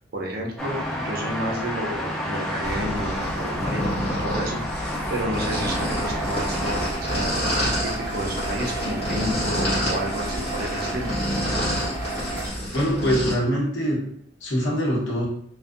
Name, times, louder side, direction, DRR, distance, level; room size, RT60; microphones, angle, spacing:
voice 1, 0.1-4.6 5.1-7.4 7.8-11.1, right 1 dB, 55° right, -1 dB, 0.5 m, -31 dB
sound 1, 0.6-6.9, left 1 dB, ahead, 0.4 m, -30 dB
sound 2, 2.6-13.3, equal, 30° left, 1.1 m, -28 dB
sound 3, 5.5-12.5, right 2 dB, 15° right, 1.0 m, -32 dB
voice 2, 12.7-14.0 14.4-15.3, equal, 70° left, -4 dB, 0.9 m, -23 dB
2.5 x 2.1 x 2.4 m, 0.68 s
head